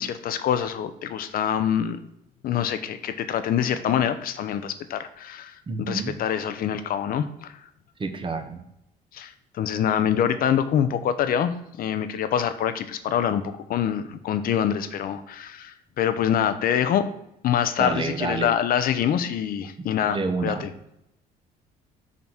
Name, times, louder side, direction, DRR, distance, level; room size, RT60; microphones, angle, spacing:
voice 1, 0.0-2.0 2.4-7.5 9.1-17.1 17.4-20.7, left 9 dB, 60° left, 11 dB, 0.7 m, -25 dB
voice 2, 5.7-6.1 8.0-8.6 17.8-18.5 20.1-20.7, right 4 dB, 30° right, 5 dB, 1.1 m, -28 dB
7.3 x 4.1 x 6.0 m, 0.81 s
cardioid pair, 110°, 17 cm